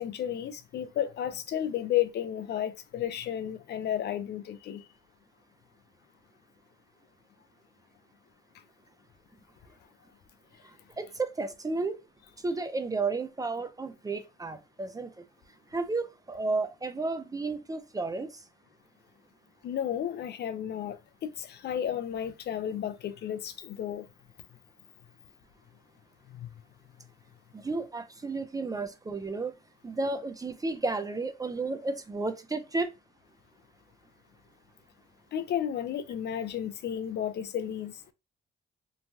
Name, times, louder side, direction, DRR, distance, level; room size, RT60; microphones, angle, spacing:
voice 1, 0.0-4.8 19.6-21.0 21.2-24.1 26.3-26.5 35.3-37.9, left 10 dB, 60° left, 0.4 m, -32 dB
voice 2, 11.0-12.0 12.4-15.1 15.7-18.4 27.5-29.5 29.8-32.9, right 3 dB, 20° right, 0.4 m, -32 dB
3.1 x 2.2 x 2.6 m
cardioid pair, 90°, 20 cm